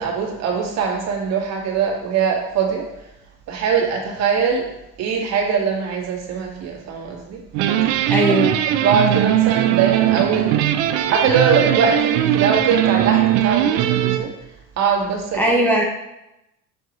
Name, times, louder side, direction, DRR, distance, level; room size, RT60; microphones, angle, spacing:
voice 1, 0.0-2.9 3.5-4.7 5.0-7.4 8.8-10.7 11.1-14.3 14.8-15.6, right 6 dB, 55° right, -1 dB, 1.9 m, -21 dB
sound 1, 7.5-14.2, right 12 dB, 90° right, 0.6 m, -19 dB
voice 2, 8.1-8.6 15.3-15.8, right 1 dB, 5° left, -2 dB, 1.2 m, -18 dB
7.1 x 6.3 x 3.1 m, 0.89 s
cardioid pair, 140°, 32 cm